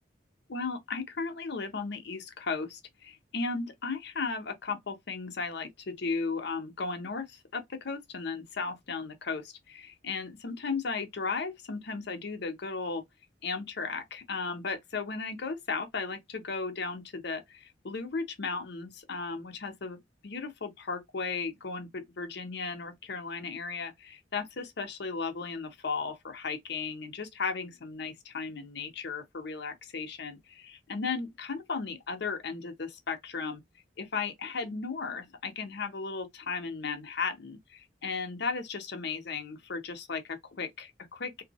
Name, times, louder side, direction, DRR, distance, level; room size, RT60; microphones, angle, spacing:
voice 1, 0.5-13.0 13.4-20.0 20.2-33.6 34.0-41.4, left 4 dB, 65° left, 0.8 m, -35 dB
2.7 x 2.2 x 4.1 m
head